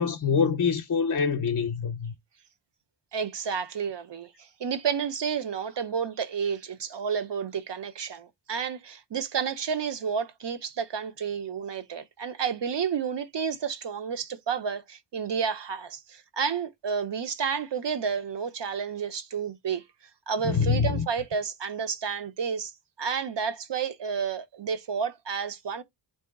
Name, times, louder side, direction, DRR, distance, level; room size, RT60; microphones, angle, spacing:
voice 1, 0.0-2.1 20.4-21.1, left 6 dB, 40° left, 0.6 m, -25 dB
voice 2, 3.1-19.8 20.3-22.7 23.0-25.8, right 6 dB, 55° right, 0.7 m, -31 dB
3.7 x 2.8 x 3.5 m
wide cardioid pair, 85°, 50 cm